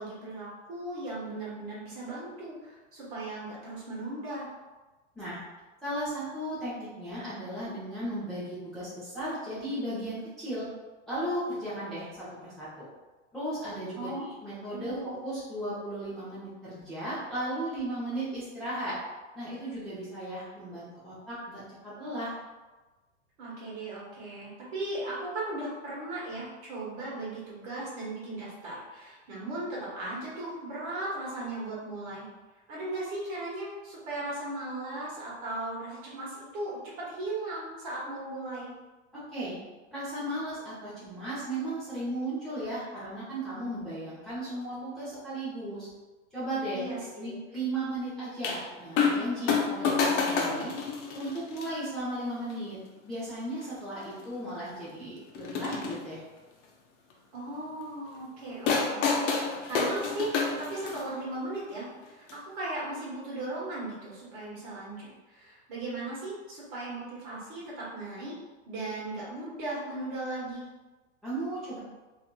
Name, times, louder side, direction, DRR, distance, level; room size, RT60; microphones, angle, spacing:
voice 1, 0.0-4.5 13.9-14.2 14.7-15.2 23.4-32.3 32.7-38.7 46.7-47.4 57.3-68.3 68.6-70.7, right 2 dB, 45° right, -6 dB, 1.3 m, -37 dB
voice 2, 5.8-10.7 11.1-12.9 13.3-19.0 19.3-22.3 39.1-39.6 39.9-45.9 46.3-50.7 51.1-52.8 53.0-56.2 71.2-71.8, right 1 dB, ahead, -12 dB, 0.6 m, -36 dB
sound 1, 48.4-48.6 49.0-49.2 49.5-51.6 52.5-52.6 53.6-53.7 54.0-54.1 55.3-55.9 58.7-61.1 62.3-62.4, left 5 dB, 75° left, 0.6 m, -28 dB
2.7 x 2.5 x 2.2 m, 1.2 s
supercardioid pair, 135°, 37 cm